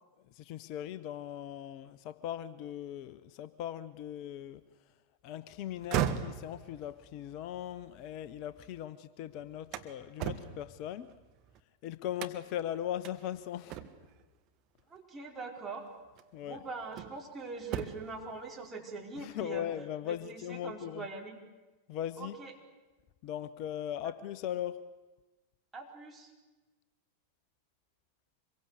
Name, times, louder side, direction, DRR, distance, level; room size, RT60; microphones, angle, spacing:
voice 1, 0.3-4.6 5.2-11.1 11.8-13.8 16.3-16.6 19.2-21.0 21.9-22.4 23.2-24.8, left 11 dB, 45° left, 0.7 m, -39 dB
sound 1, 5.7-8.8 9.2-11.6 12.2-12.6 13.0-13.2 13.7-14.2 15.4-15.6 16.2-17.3 17.6-18.2, right 10 dB, 40° right, 1.6 m, -38 dB
voice 2, 14.9-15.9 16.4-19.7 20.0-21.4 22.2-22.5 24.0-24.1 25.7-26.3, right 3 dB, 15° right, 4.8 m, -42 dB
25.5 x 22.5 x 8.2 m
figure-of-eight pair, 90°, 0 cm